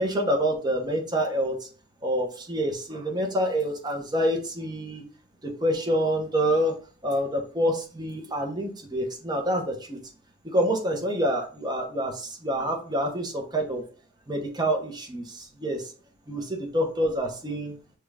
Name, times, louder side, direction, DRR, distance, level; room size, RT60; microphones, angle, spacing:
voice 1, 0.0-1.6 2.0-5.0 5.4-6.7 7.0-10.0 10.4-13.8 14.3-15.9 16.3-17.8, equal, 20° right, 2 dB, 0.9 m, -27 dB
5.8 x 2.4 x 3.3 m, 0.39 s
head